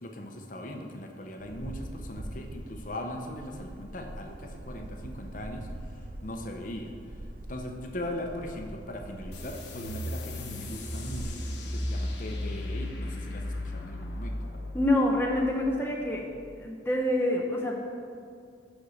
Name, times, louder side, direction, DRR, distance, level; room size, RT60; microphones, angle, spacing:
voice 1, 0.0-6.9 7.5-14.4, left 1 dB, 45° left, 3 dB, 0.8 m, -39 dB
sound 1, 1.4-11.5, right 1 dB, 45° right, 0.6 m, -43 dB
sound 2, 9.3-16.4, left 1 dB, 65° left, 1.2 m, -36 dB
voice 2, 14.7-16.2 16.6-17.8, left 1 dB, 10° left, -1 dB, 0.7 m, -26 dB
6.8 x 6.4 x 6.3 m, 2.3 s
head